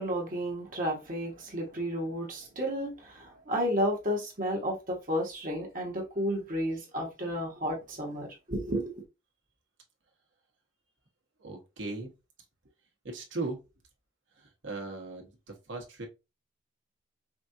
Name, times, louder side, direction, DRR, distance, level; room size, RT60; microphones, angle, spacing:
voice 1, 0.0-9.0, equal, 45° right, 1.2 m, -32 dB
voice 2, 11.4-12.1 13.0-13.6 14.6-15.3 15.7-16.1, right 3 dB, 85° right, 1.3 m, -37 dB
5.0 x 2.4 x 2.7 m
head